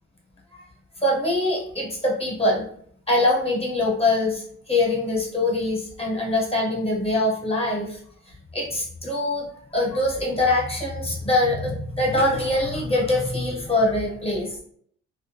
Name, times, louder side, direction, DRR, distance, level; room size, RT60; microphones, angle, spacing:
voice 1, 1.0-2.6 3.1-8.0 8.5-14.6, left 2 dB, 20° left, -2 dB, 0.8 m, -23 dB
2.2 x 2.0 x 3.2 m, 0.63 s
cardioid pair, 90°, 30 cm